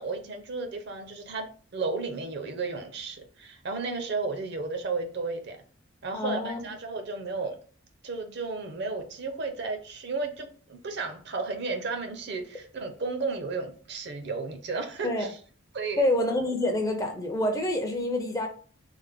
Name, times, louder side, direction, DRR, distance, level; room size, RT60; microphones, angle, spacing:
voice 1, 0.0-5.6 6.0-7.6 8.0-15.3 15.7-16.0, right 3 dB, 50° right, 0.5 m, -33 dB
voice 2, 6.1-6.7 15.0-15.3 16.0-18.5, left 1 dB, 15° left, 0.4 m, -27 dB
3.3 x 2.0 x 3.5 m
head